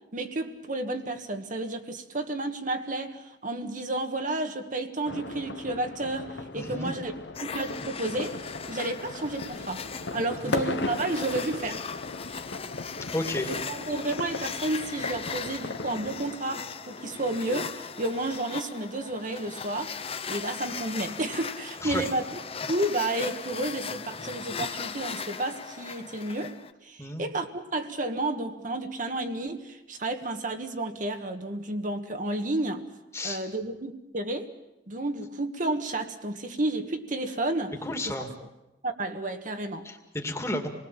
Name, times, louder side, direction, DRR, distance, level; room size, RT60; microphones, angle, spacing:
voice 1, 0.1-7.1 7.4-11.8 13.7-20.0 20.3-22.2 22.7-32.9 33.2-34.5 34.9-37.7 38.8-39.9, right 2 dB, 45° right, 1.5 m, -31 dB
sound 1, 5.0-16.4, left 3 dB, 80° left, 1.4 m, -37 dB
voice 2, 6.6-6.9 10.3-10.6 13.1-13.5 21.8-22.1 27.0-27.2 33.1-33.4 37.8-38.3 39.8-40.7, left 1 dB, 15° left, 2.4 m, -32 dB
sound 2, 7.3-26.7, left 6 dB, 35° left, 0.8 m, -38 dB
27.5 x 20.0 x 7.4 m
head